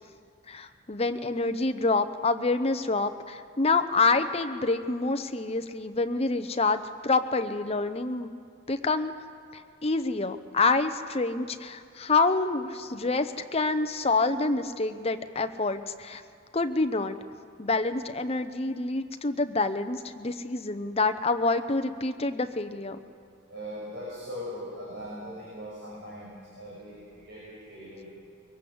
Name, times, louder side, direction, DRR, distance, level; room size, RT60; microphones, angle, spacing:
voice 1, 0.5-8.3 8.7-9.1 9.5-16.2 16.5-17.2 17.6-23.0, left 3 dB, 30° left, 8 dB, 0.8 m, -27 dB
voice 2, 23.5-28.1, equal, 55° right, -7 dB, 6.5 m, -40 dB
23.0 x 18.0 x 7.9 m, 2.2 s
head